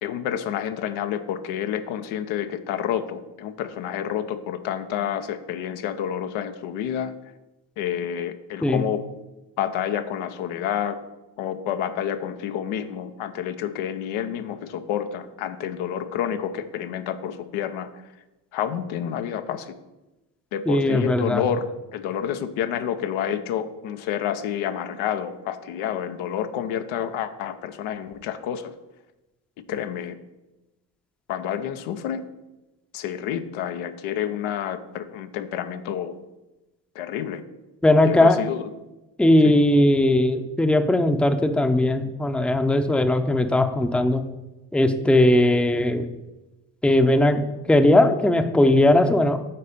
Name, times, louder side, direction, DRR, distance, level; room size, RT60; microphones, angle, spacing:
voice 1, 0.0-7.1 7.8-9.0 9.6-11.0 11.4-17.9 18.5-19.7 20.5-21.7 21.9-28.7 29.7-30.2 31.3-32.2 32.9-36.2 36.9-37.4 38.0-38.6 39.4-39.5, left 9 dB, 70° left, 9 dB, 0.8 m, -29 dB
voice 2, 20.7-21.4 37.8-38.4 39.2-44.2 44.7-46.1 46.8-47.4 47.7-49.4, left 1 dB, ahead, 8 dB, 0.7 m, -18 dB
8.6 x 4.1 x 5.2 m, 1.0 s
hypercardioid pair, 50°, 48 cm